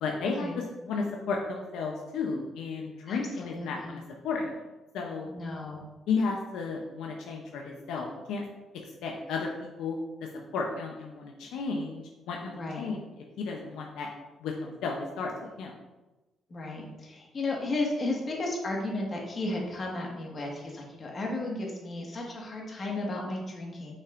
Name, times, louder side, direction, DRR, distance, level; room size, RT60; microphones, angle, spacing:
voice 1, 0.0-4.6 4.9-5.3 6.1-8.4 9.0-13.0 13.4-14.1 14.4-15.3 15.6-15.7, left 4 dB, 85° left, 0 dB, 0.7 m, -33 dB
voice 2, 3.1-4.0 5.3-5.8 12.5-12.9 16.5-24.0, left 2 dB, 40° left, -1 dB, 1.7 m, -34 dB
6.5 x 5.6 x 2.6 m, 1.1 s
cardioid pair, 90°, 0 cm